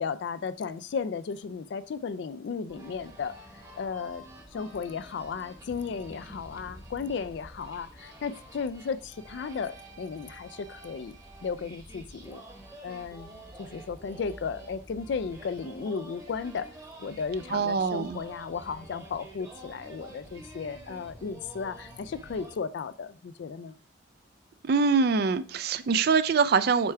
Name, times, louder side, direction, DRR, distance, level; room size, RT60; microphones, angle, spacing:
voice 1, 0.0-3.3 3.8-4.2 4.5-11.1 11.4-12.4 12.8-16.7 17.0-23.7, left 5 dB, 65° left, 0.3 m, -35 dB
sound 1, 2.7-22.6, right 1 dB, 20° right, 1.0 m, -48 dB
voice 2, 17.5-18.2 24.6-26.9, right 5 dB, 55° right, 0.4 m, -24 dB
6.9 x 4.5 x 3.3 m
head